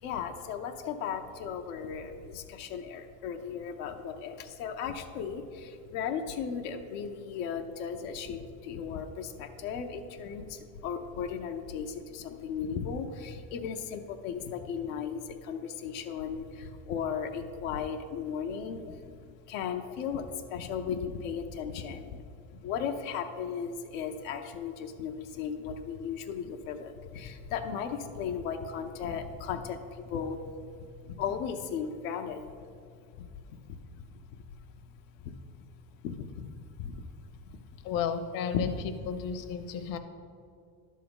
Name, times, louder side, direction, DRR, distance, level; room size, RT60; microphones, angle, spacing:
voice 1, 0.0-19.0 19.5-22.2 22.5-30.5 31.0-32.4 33.2-34.4 35.2-35.4 36.0-37.1 38.5-38.7, left 7 dB, 90° left, 4 dB, 0.8 m, -36 dB
voice 2, 37.8-38.7 39.1-40.0, left 7 dB, 60° left, 7 dB, 0.8 m, -33 dB
11.0 x 3.8 x 7.0 m, 2.4 s
cardioid pair, 130°, 39 cm